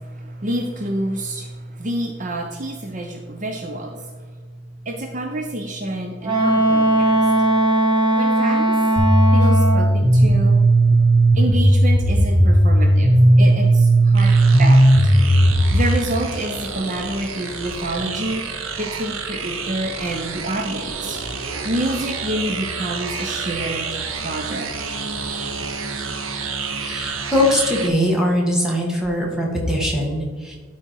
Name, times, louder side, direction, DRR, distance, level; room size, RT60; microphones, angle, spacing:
voice 1, 0.0-4.1 4.9-7.3 8.1-8.8 9.3-10.6 11.3-14.3 14.6-14.9 15.7-18.4 18.8-21.2 21.6-23.9 24.2-24.7, right 1 dB, 40° right, 3 dB, 0.7 m, -28 dB
Wind instrument woodwind instrument, 6.2-9.9, right 2 dB, 20° right, 1.3 m, -18 dB
sound 1, 9.0-15.8, right 1 dB, 50° left, 1.9 m, -14 dB
sound 2, 14.2-27.9, right 5 dB, 80° right, 0.9 m, -30 dB
voice 2, 26.8-30.6, left 1 dB, 5° right, -2 dB, 1.7 m, -21 dB
11.5 x 4.4 x 4.6 m, 1.5 s
head